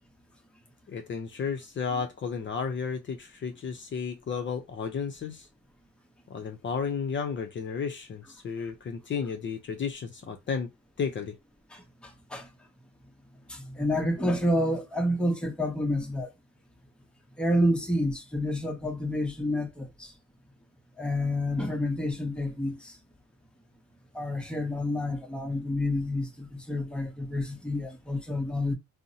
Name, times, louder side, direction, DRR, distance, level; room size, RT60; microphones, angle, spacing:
voice 1, 0.9-5.5 6.3-10.7 11.0-11.4, left 6 dB, 40° left, 0.5 m, -33 dB
voice 2, 13.5-16.3 17.4-20.1 21.0-22.9 24.1-28.7, left 1 dB, 5° left, 0.7 m, -29 dB
2.6 x 2.0 x 2.6 m
cardioid pair, 90°, 30 cm